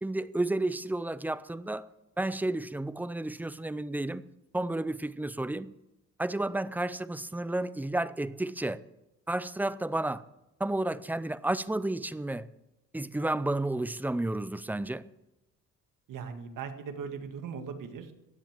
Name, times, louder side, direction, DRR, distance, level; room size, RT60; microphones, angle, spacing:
voice 1, 0.0-1.9 2.2-4.2 4.5-5.7 6.2-8.8 9.3-10.2 10.6-12.5 12.9-15.1, right 2 dB, 5° right, 0.5 m, -31 dB
voice 2, 16.1-18.1, right 6 dB, 80° right, 1.9 m, -39 dB
16.0 x 10.5 x 7.5 m
cardioid pair, 125°, 31 cm